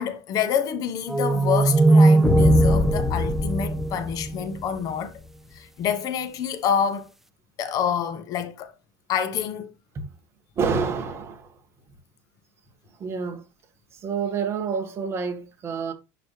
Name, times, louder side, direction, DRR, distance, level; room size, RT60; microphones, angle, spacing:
voice 1, 0.0-5.1 5.5-7.1 7.6-8.7 9.1-9.7, left 8 dB, 45° left, 1.0 m, -27 dB
sound 1, 1.1-4.5, right 3 dB, 5° right, 0.4 m, -19 dB
sound 2, 2.2-4.8, left 4 dB, 15° left, 0.8 m, -24 dB
voice 2, 10.6-11.5 13.0-13.4 14.0-15.9, right 5 dB, 30° right, 1.7 m, -28 dB
11.0 x 4.1 x 3.2 m
supercardioid pair, 135°, 9 cm